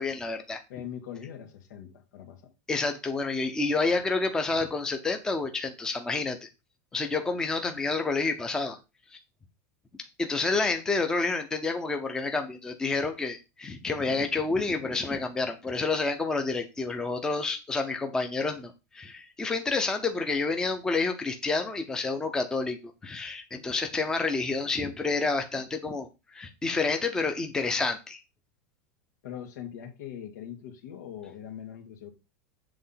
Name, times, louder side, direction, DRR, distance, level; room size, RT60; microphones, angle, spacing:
voice 1, 0.0-0.6 2.7-6.5 6.9-8.8 10.2-22.8 23.0-28.2, left 3 dB, 5° left, 0.6 m, -29 dB
voice 2, 0.7-2.5 29.2-32.1, left 9 dB, 85° left, 2.1 m, -41 dB
7.9 x 3.7 x 5.7 m
supercardioid pair, 175°, 9 cm